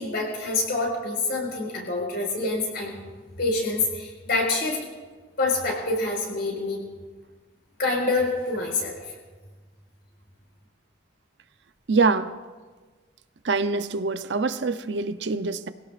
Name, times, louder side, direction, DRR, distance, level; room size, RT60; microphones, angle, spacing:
voice 1, 0.0-2.9 3.4-4.8 5.4-6.8 7.8-9.0, left 2 dB, 60° left, 4.8 m, -26 dB
voice 2, 11.9-12.3 13.4-15.7, right 4 dB, 70° right, 0.6 m, -24 dB
23.5 x 16.5 x 2.5 m
head